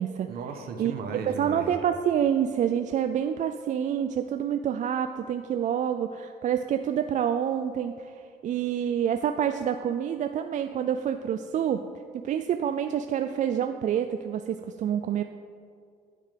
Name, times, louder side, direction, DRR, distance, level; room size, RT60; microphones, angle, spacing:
voice 1, 0.3-1.7, right 5 dB, 65° right, 5 dB, 1.3 m, -36 dB
voice 2, 1.2-8.1 8.4-11.8 12.1-15.2, right 9 dB, 50° right, 8 dB, 0.4 m, -27 dB
9.6 x 9.0 x 5.2 m, 2.3 s
cardioid pair, 110°, 17 cm